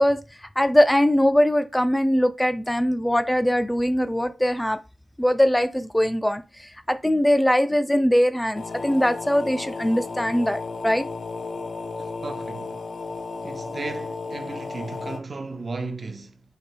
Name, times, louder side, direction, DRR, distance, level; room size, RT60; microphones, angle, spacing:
voice 1, 0.0-4.8 5.2-11.1, equal, 5° left, 0.3 m, -21 dB
sound 1, 8.5-15.2, left 4 dB, 80° left, 0.6 m, -34 dB
voice 2, 12.0-12.9 13.4-16.4, right 3 dB, 45° right, 0.5 m, -35 dB
3.3 x 2.9 x 4.4 m
wide cardioid pair, 120°, 0 cm